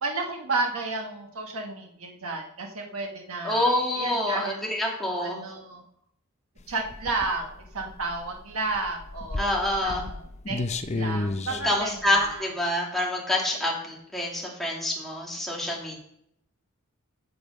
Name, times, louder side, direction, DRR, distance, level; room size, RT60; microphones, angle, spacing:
voice 1, 0.0-4.5 4.8-5.8 6.7-9.5 9.8-10.6 10.9-12.6, right 3 dB, 80° right, 2 dB, 1.3 m, -32 dB
voice 2, 3.4-5.4 9.4-10.0 11.5-16.0, left 1 dB, ahead, -4 dB, 2.7 m, -27 dB
sound 1, 6.6-12.4, left 2 dB, 30° left, 0.6 m, -33 dB
11.0 x 7.1 x 5.3 m, 0.73 s
head